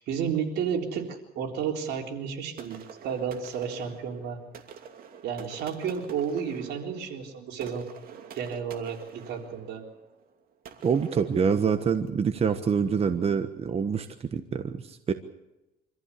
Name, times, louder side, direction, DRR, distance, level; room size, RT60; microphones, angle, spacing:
voice 1, 0.0-4.4 5.2-7.9 8.3-9.8, right 7 dB, 75° right, 2 dB, 3.9 m, -32 dB
sound 1, 2.6-12.2, right 7 dB, 60° right, 2.7 m, -48 dB
voice 2, 10.8-15.1, right 6 dB, 35° right, 8 dB, 1.3 m, -26 dB
25.5 x 14.5 x 8.5 m, 0.97 s
cardioid pair, 110°, 17 cm